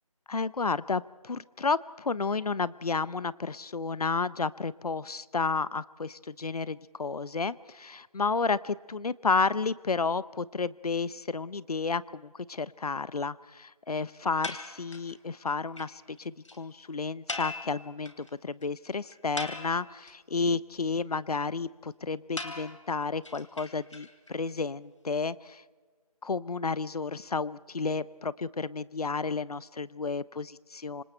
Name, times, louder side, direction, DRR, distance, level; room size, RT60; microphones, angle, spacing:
voice 1, 0.3-25.6 26.2-31.0, left 4 dB, 75° left, 19 dB, 0.8 m, -31 dB
sound 1, 14.4-15.2 15.5-15.6 15.8-15.9 16.2-16.3 16.5-16.6 17.3-18.3 18.6-18.7 19.1-20.1 22.4-24.3, left 2 dB, 50° left, 2.7 m, -39 dB
26.5 x 24.5 x 4.4 m, 1.4 s
figure-of-eight pair, 180°, 19 cm